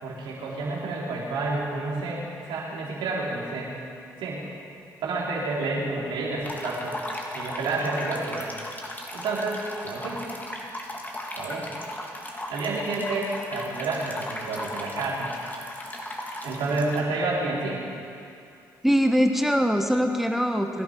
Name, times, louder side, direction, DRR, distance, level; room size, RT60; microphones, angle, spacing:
voice 1, 0.0-3.7 4.2-4.5 5.0-6.9 7.3-8.5 9.1-10.2 11.4-11.7 12.5-15.3 16.4-17.8, right 3 dB, 75° right, -4 dB, 3.7 m, -29 dB
sound 1, 6.4-17.0, left 1 dB, 20° left, 2.9 m, -36 dB
voice 2, 18.8-20.8, equal, 5° right, 5 dB, 1.2 m, -22 dB
22.5 x 11.0 x 5.1 m, 2.5 s
hypercardioid pair, 50°, 8 cm